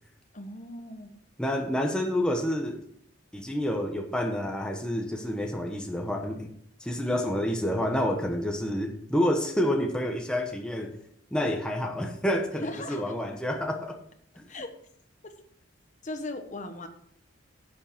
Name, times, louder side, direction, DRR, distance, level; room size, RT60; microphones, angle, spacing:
voice 1, 0.3-1.1 12.6-13.0 14.5-14.7 16.0-16.9, left 2 dB, 40° left, 7 dB, 1.1 m, -37 dB
voice 2, 1.4-2.8 3.3-6.5 6.8-10.9 11.3-14.0 14.4-14.5, left 1 dB, 5° left, 2 dB, 1.1 m, -28 dB
10.5 x 7.6 x 4.5 m, 0.68 s
head